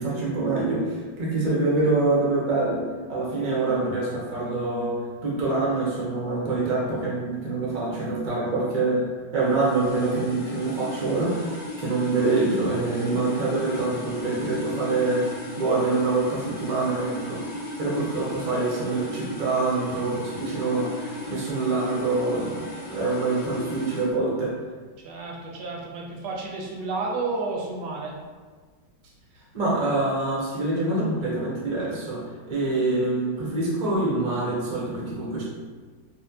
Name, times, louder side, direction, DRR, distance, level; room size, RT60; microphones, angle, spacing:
voice 1, 0.0-9.1 9.3-11.5 11.8-15.3 15.6-17.4 17.8-24.6 29.5-35.4, right 2 dB, 50° right, -5 dB, 0.4 m, -25 dB
sound 1, 9.4-24.1, left 1 dB, 70° left, 1.8 m, -36 dB
voice 2, 25.0-28.1, right 3 dB, 75° right, -2 dB, 1.2 m, -31 dB
4.1 x 2.1 x 2.7 m, 1.5 s
omnidirectional pair, 1.9 m